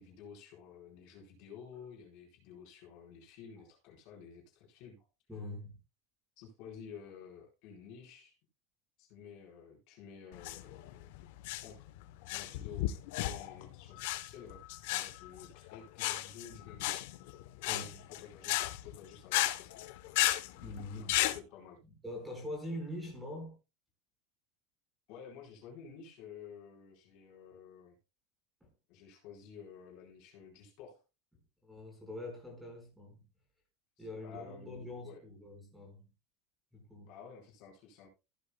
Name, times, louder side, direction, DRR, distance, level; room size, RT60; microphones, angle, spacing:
voice 1, 0.0-5.0 5.3-5.4 6.4-8.4 9.0-11.1 11.6-11.8 12.3-12.9 13.2-14.6 14.9-17.0 18.1-19.8 20.9-21.8 25.1-28.0 28.9-31.0 34.0-35.2 37.1-38.1, left 7 dB, 50° left, 4.2 m, -52 dB
voice 2, 5.3-5.8 17.6-18.1 20.6-21.1 21.8-23.5 28.6-28.7 31.6-33.2 34.0-36.1 36.7-37.2, left 1 dB, 5° right, 4.6 m, -44 dB
sound 1, 10.3-21.4, left 16 dB, 65° left, 0.8 m, -35 dB
15.5 x 8.4 x 2.2 m
supercardioid pair, 165°, 0 cm